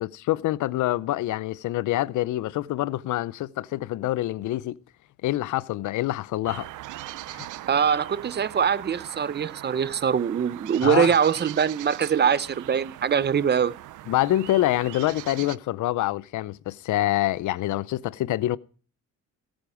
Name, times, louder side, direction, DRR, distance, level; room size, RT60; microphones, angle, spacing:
voice 1, 0.0-4.8 5.2-6.7 7.3-7.5 10.8-11.1 14.1-18.6, left 15 dB, 75° left, 0.6 m, -26 dB
sound 1, 6.5-15.6, right 16 dB, 80° right, 0.6 m, -40 dB
voice 2, 7.7-13.8, right 7 dB, 35° right, 0.6 m, -23 dB
17.5 x 8.9 x 4.9 m
cardioid pair, 90°, 30 cm